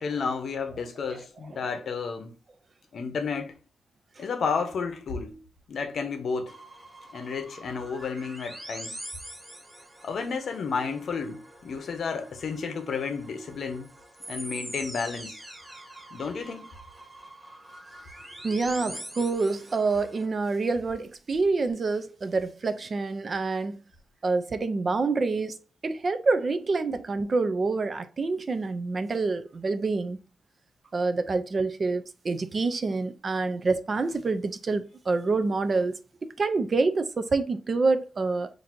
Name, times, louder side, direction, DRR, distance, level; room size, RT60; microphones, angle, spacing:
voice 1, 0.0-2.3 2.9-3.5 4.2-5.4 5.7-6.6 7.1-9.0 10.0-13.9 14.3-15.4 16.1-16.7, left 5 dB, 55° left, 0.7 m, -32 dB
sound 1, 6.5-20.3, right 1 dB, 5° right, 0.7 m, -44 dB
voice 2, 18.4-23.8 24.2-25.6 25.8-30.2 30.9-38.5, right 3 dB, 35° right, 0.3 m, -27 dB
5.8 x 2.6 x 2.5 m
wide cardioid pair, 160°, 0 cm